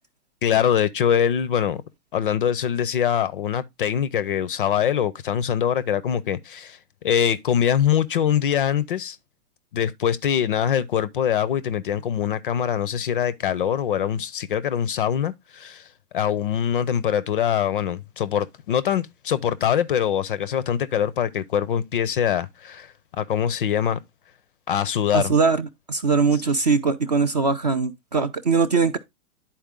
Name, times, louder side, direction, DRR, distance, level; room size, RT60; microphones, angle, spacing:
voice 1, 0.4-1.8 2.1-6.8 7.0-9.2 9.7-15.9 16.1-24.0 24.7-25.3, left 9 dB, 40° left, 0.4 m, -23 dB
voice 2, 25.1-29.0, right 4 dB, 30° right, 0.4 m, -21 dB
10.5 x 4.4 x 3.5 m
hypercardioid pair, 145°, 45 cm